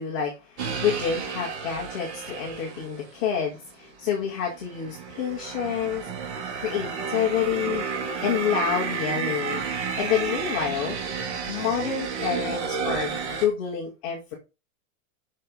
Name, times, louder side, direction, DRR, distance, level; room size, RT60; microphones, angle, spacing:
voice 1, 0.0-6.1 6.5-7.9 8.2-9.6 10.0-11.0 11.5-14.3, left 8 dB, 10° left, -4 dB, 0.3 m, -28 dB
sound 1, 0.6-3.1 3.8-13.5, right 5 dB, 55° right, 2.0 m, -31 dB
7.5 x 5.7 x 5.1 m, 0.29 s
supercardioid pair, 180°, 40 cm